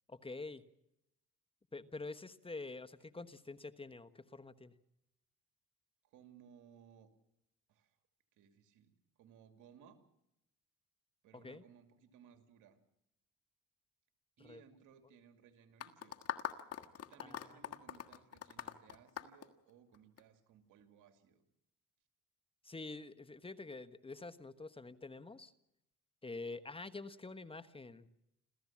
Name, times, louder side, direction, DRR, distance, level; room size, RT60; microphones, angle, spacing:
voice 1, 0.1-0.6 1.7-4.7 11.3-11.6 14.4-14.6 17.2-17.6 22.6-25.5 26.2-28.1, left 3 dB, 20° left, 11 dB, 1.3 m, -47 dB
voice 2, 6.1-7.1 7.7-8.0 8.3-8.9 9.2-10.0 11.2-12.8 14.4-16.1 17.0-21.4, right 7 dB, 90° right, 7 dB, 2.6 m, -62 dB
sound 1, 15.8-20.2, left 9 dB, 55° left, 1.6 m, -43 dB
27.5 x 15.0 x 7.4 m, 0.84 s
cardioid pair, 90°, 30 cm